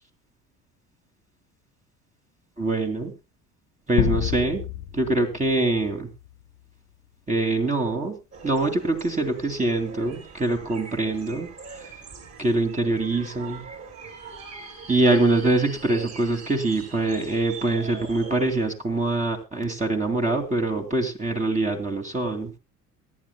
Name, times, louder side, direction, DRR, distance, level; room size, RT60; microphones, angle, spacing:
voice 1, 2.6-3.1 3.9-4.7 4.9-6.1 7.3-8.2 8.4-11.5 11.8-11.9 12.4-13.6 14.9-22.5, right 2 dB, 15° right, 1 dB, 2.4 m, -24 dB
sound 1, 4.0-6.5, left 12 dB, 50° left, 1.3 m, -29 dB
sound 2, 8.3-18.7, right 4 dB, 35° right, 4.8 m, -42 dB
23.5 x 11.0 x 2.2 m, 0.27 s
figure-of-eight pair, 60°, 45 cm